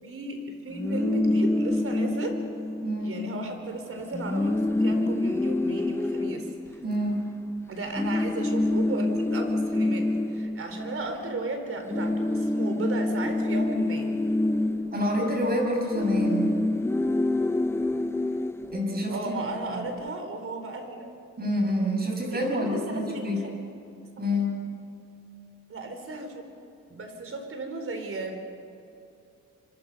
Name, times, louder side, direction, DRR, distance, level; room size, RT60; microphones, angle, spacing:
voice 1, 0.0-2.4 3.0-6.5 7.7-14.1 19.1-21.1 22.3-23.4 24.2-24.3 25.7-26.4 26.9-28.4, right 2 dB, 45° right, 5 dB, 4.2 m, -35 dB
sound 1, 0.7-3.3 3.6-3.7 4.0-7.4 7.9-11.5 11.7-19.4, left 2 dB, 10° left, 0.6 m, -27 dB
voice 2, 2.8-3.2 6.8-7.3 14.9-16.6 18.7-19.9 21.4-23.5 24.2-24.7 26.9-27.0, equal, 30° right, 1 dB, 6.8 m, -28 dB
25.5 x 24.5 x 5.5 m, 2.6 s
cardioid pair, 90°, 30 cm